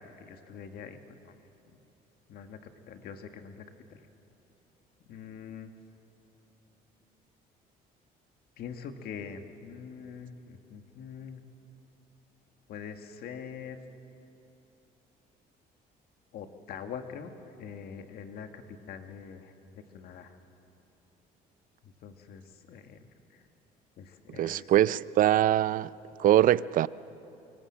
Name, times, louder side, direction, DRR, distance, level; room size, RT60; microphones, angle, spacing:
voice 1, 0.0-1.4 2.3-3.6 3.9-4.0 5.1-5.7 8.6-11.4 12.7-13.8 16.3-17.3 17.6-18.6 18.9-20.4 21.8-23.0 23.3-23.4 24.0-24.7, left 7 dB, 65° left, 1.8 m, -44 dB
voice 2, 24.3-25.9 26.2-26.9, right 12 dB, 55° right, 0.5 m, -23 dB
25.0 x 24.0 x 7.5 m
cardioid pair, 110°, 17 cm